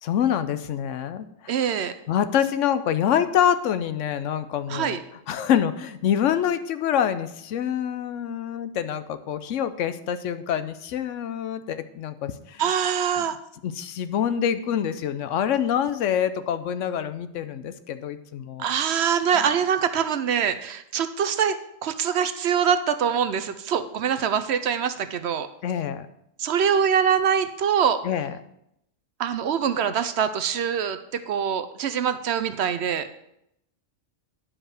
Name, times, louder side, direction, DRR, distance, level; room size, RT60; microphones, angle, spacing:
voice 1, 0.0-1.6 2.1-5.0 5.3-12.6 13.2-13.3 13.6-18.7 25.6-26.1 28.0-28.3, left 9 dB, 80° left, 12 dB, 1.0 m, -26 dB
voice 2, 1.5-1.9 4.7-5.0 12.6-13.4 18.6-21.5 21.8-25.5 26.4-28.0 29.2-33.1, right 7 dB, 65° right, 11 dB, 0.8 m, -24 dB
10.0 x 4.9 x 6.3 m, 0.79 s
omnidirectional pair, 1.3 m